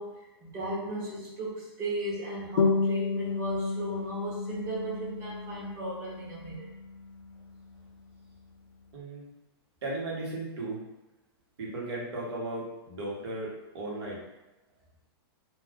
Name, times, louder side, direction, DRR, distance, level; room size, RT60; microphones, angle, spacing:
voice 1, 0.0-6.7, right 1 dB, 20° right, -6 dB, 0.8 m, -36 dB
sound 1, 2.6-7.6, left 4 dB, 60° left, 0.4 m, -31 dB
voice 2, 8.9-9.2 9.8-10.8 11.6-14.2, right 2 dB, 80° right, -4 dB, 1.2 m, -36 dB
2.4 x 2.3 x 3.5 m, 0.98 s
hypercardioid pair, 170°, 14 cm